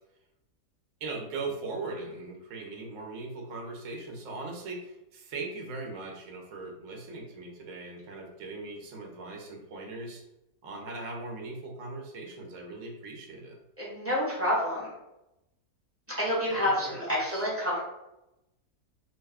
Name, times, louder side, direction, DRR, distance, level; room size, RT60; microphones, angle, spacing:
voice 1, 1.0-10.2 10.6-13.6 16.5-17.0 17.3-17.4, right 3 dB, 65° right, 0 dB, 1.0 m, -39 dB
voice 2, 13.8-14.9 16.1-17.8, left 1 dB, 10° right, -7 dB, 0.8 m, -28 dB
2.7 x 2.2 x 3.4 m, 0.90 s
omnidirectional pair, 1.6 m